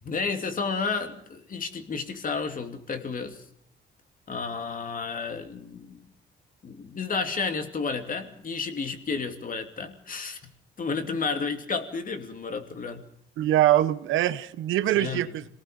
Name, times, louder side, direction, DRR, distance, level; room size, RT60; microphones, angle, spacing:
voice 1, 0.0-3.4 4.3-6.0 6.6-10.5 10.8-13.0 15.0-15.3, left 4 dB, 45° left, 6 dB, 2.8 m, -31 dB
voice 2, 13.4-15.5, right 13 dB, 85° right, 14 dB, 1.0 m, -23 dB
26.5 x 18.5 x 5.3 m, 0.65 s
cardioid pair, 90°, 20 cm